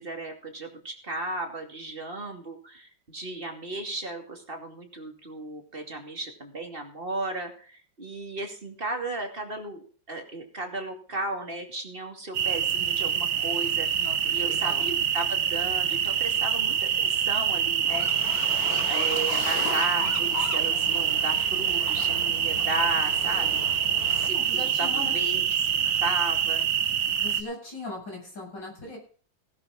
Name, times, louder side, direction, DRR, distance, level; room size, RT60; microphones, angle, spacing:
voice 1, 0.0-18.4 18.9-26.7, right 2 dB, 30° right, 4 dB, 2.7 m, -35 dB
sound 1, 12.3-27.4, right 8 dB, 80° right, 1.9 m, -26 dB
voice 2, 13.9-14.9 24.3-25.1 27.2-29.0, left 2 dB, 65° left, -1 dB, 8.3 m, -39 dB
sound 2, 17.9-24.3, left 3 dB, 90° left, 3.0 m, -36 dB
17.0 x 10.5 x 3.8 m, 0.43 s
omnidirectional pair, 2.1 m